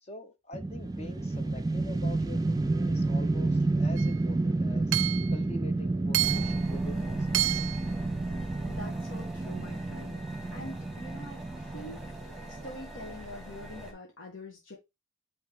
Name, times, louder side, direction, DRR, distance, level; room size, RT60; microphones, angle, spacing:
voice 1, 0.0-4.9 5.3-7.4, left 2 dB, 35° left, 0.6 m, -45 dB
sound 1, 0.5-12.7, right 2 dB, 20° right, 0.4 m, -30 dB
Hammer / Chink clink, 4.0-4.1 4.9-5.3 6.1-6.6 7.3-7.8, right 16 dB, 85° right, 0.4 m, -28 dB
sound 2, 6.2-13.9, right 1 dB, ahead, 1.4 m, -43 dB
voice 2, 8.6-10.2 10.5-12.0 12.5-14.7, left 1 dB, 80° left, 1.5 m, -44 dB
8.7 x 3.2 x 3.5 m
head